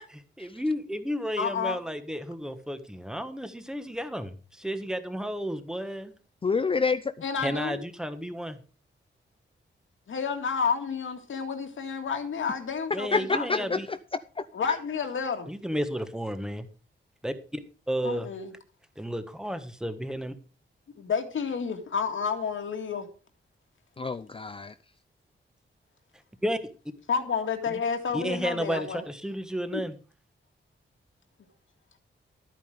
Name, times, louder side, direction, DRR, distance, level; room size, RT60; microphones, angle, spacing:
voice 1, 0.4-6.1 7.4-8.6 12.9-13.9 15.5-16.7 17.2-17.6 17.9-18.3 19.0-20.3 26.4-26.6 28.1-30.0, equal, 5° right, 1.3 m, -32 dB
voice 2, 1.4-1.8 7.2-7.8 10.1-13.8 14.5-15.5 18.0-18.5 21.0-23.1 27.1-29.0 29.7-29.8, left 6 dB, 85° left, 2.1 m, -30 dB
voice 3, 6.4-7.0 13.1-14.0 24.0-24.7, left 4 dB, 25° left, 0.5 m, -27 dB
13.0 x 9.3 x 5.0 m
wide cardioid pair, 170°, 20 cm